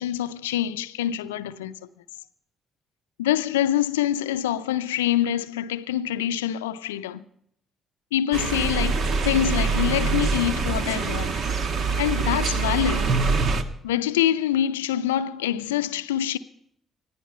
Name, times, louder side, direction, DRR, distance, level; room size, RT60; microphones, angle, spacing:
voice 1, 0.0-1.8 3.2-7.2 8.1-11.5 12.0-13.2 13.8-16.4, left 11 dB, 85° left, 0.5 m, -25 dB
sound 1, 8.3-13.6, right 4 dB, 55° right, 1.4 m, -24 dB
20.0 x 15.0 x 4.3 m
hypercardioid pair, 45°, 0 cm